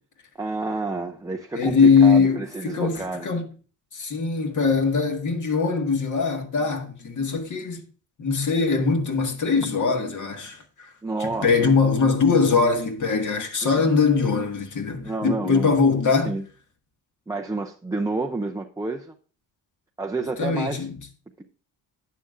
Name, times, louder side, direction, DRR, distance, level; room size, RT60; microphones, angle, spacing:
voice 1, 0.4-3.3 11.0-11.7 13.6-13.8 15.0-15.8 16.2-16.4 17.3-19.1 20.0-20.9 21.4-21.5, right 3 dB, 10° right, 0.5 m, -29 dB
voice 2, 1.5-3.4 3.9-7.8 8.2-10.6 11.2-16.4 20.4-21.0, left 5 dB, 45° left, 1.7 m, -21 dB
11.0 x 8.5 x 2.5 m
cardioid pair, 100°, 42 cm